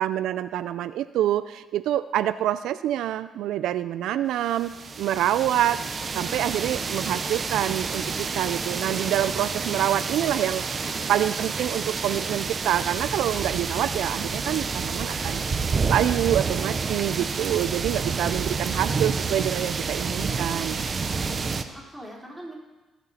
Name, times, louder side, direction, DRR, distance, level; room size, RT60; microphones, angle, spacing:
voice 1, 0.0-5.8 6.1-10.7 11.1-15.4 15.9-20.8, right 12 dB, 85° right, 13 dB, 0.3 m, -26 dB
sound 1, 4.5-21.6, right 5 dB, 40° right, 0.8 m, -29 dB
voice 2, 10.8-11.1 21.2-22.5, equal, 5° right, -3 dB, 3.6 m, -44 dB
19.5 x 6.9 x 4.3 m, 1.2 s
cardioid pair, 90°, 0 cm